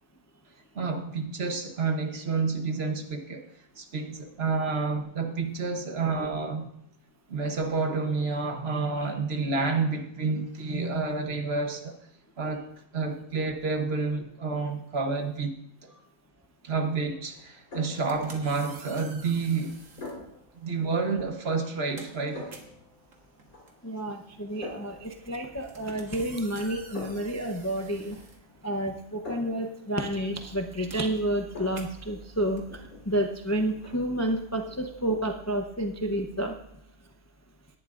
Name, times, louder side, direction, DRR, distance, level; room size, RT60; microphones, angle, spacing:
voice 1, 0.7-3.5 3.8-6.7 7.3-12.0 12.4-12.7 12.9-15.5 15.8-15.9 16.6-19.8 20.5-22.5, right 4 dB, 50° right, 1.2 m, -29 dB
sound 1, 17.3-35.5, left 2 dB, 75° left, 4.8 m, -48 dB
sound 2, 17.8-20.2 21.1-21.3 21.6-29.1 29.4-34.0, right 3 dB, 65° right, 1.8 m, -50 dB
voice 2, 23.8-28.2 28.6-36.5, right 1 dB, 15° left, 0.6 m, -30 dB
18.0 x 11.0 x 2.5 m
omnidirectional pair, 1.5 m